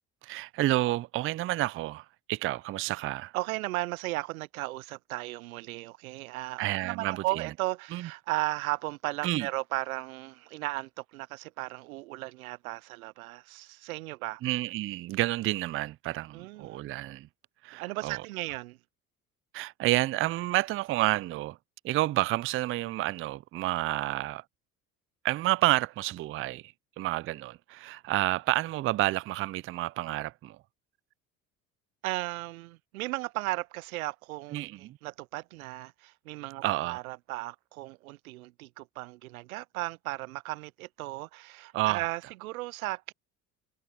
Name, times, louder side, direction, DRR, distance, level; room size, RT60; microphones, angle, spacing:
voice 1, 0.2-3.3 6.6-7.5 7.9-8.1 9.2-9.5 14.4-17.3 17.6-18.2 19.5-21.6 21.8-24.4 25.2-30.6 34.5-35.0 36.6-37.0 41.7-42.1, right 17 dB, 35° right, 0.4 m, -30 dB
voice 2, 3.3-14.4 16.3-16.8 17.7-18.8 32.0-43.1, right 20 dB, 85° right, 0.6 m, -36 dB
hypercardioid pair, 60°, 42 cm